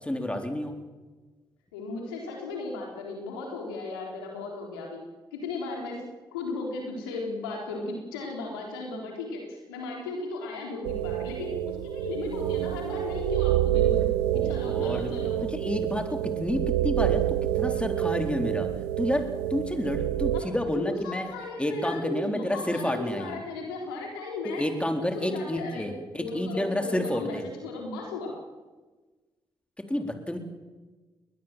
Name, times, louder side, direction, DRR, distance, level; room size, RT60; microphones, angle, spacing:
voice 1, 0.0-0.7 14.3-15.1 15.4-18.7 19.0-21.3 21.6-23.4 24.6-27.4 29.9-30.4, left 1 dB, 10° left, 5 dB, 3.9 m, -30 dB
voice 2, 1.7-5.0 5.3-6.0 6.3-14.1 14.4-15.5 20.3-24.6 25.0-25.9 26.1-27.4 27.6-28.4, left 3 dB, 85° left, 0 dB, 3.8 m, -36 dB
sound 1, 10.8-20.4, right 12 dB, 85° right, 0.9 m, -28 dB
21.0 x 20.0 x 7.6 m, 1.3 s
hypercardioid pair, 40°, 12 cm